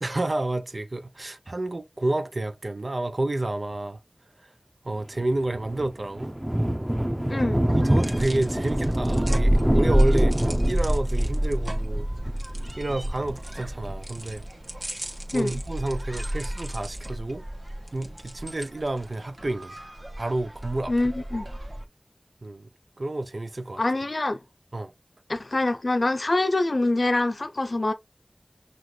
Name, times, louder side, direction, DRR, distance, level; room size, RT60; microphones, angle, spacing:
voice 1, 0.0-4.0 4.4-4.5 4.8-6.3 7.3-10.4 10.6-12.1 12.8-14.4 15.3-17.4 17.9-19.8 20.2-20.9 22.4-22.7 23.0-23.8 24.7-24.9, right 2 dB, 85° right, 0.4 m, -30 dB
Thunder, 5.2-14.3, right 1 dB, 20° right, 0.8 m, -27 dB
voice 2, 7.3-7.6 15.3-15.5 20.9-21.5 23.8-24.4 25.3-27.9, left 2 dB, 85° left, 0.5 m, -25 dB
sound 1, 7.7-21.8, right 1 dB, 50° right, 1.2 m, -28 dB
5.9 x 2.5 x 3.1 m
wide cardioid pair, 45°, 0 cm